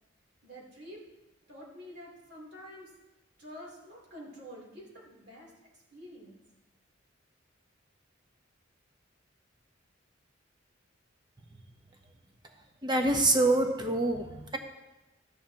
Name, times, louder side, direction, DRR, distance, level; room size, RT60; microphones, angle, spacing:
voice 1, 0.4-1.0 1.5-2.9 3.4-5.5 5.9-6.4, equal, 60° right, -4 dB, 3.2 m, -48 dB
voice 2, 12.8-14.6, right 2 dB, 20° right, 4 dB, 0.9 m, -26 dB
13.0 x 10.5 x 2.9 m, 1.1 s
head